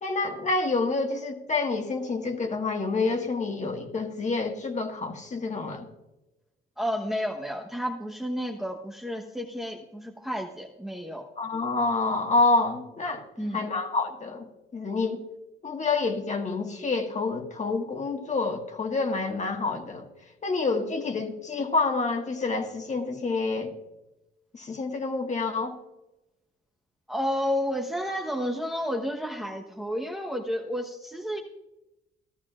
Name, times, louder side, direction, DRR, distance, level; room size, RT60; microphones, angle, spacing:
voice 1, 0.0-5.9 11.4-13.2 13.5-14.5 14.7-15.2 15.6-20.1 20.4-23.7 24.5-25.8, left 3 dB, 35° left, 3 dB, 1.7 m, -28 dB
voice 2, 6.8-11.3 13.4-13.7 27.1-31.4, equal, ahead, 1 dB, 1.0 m, -31 dB
15.0 x 13.0 x 2.5 m, 0.95 s
cardioid pair, 105°, 21 cm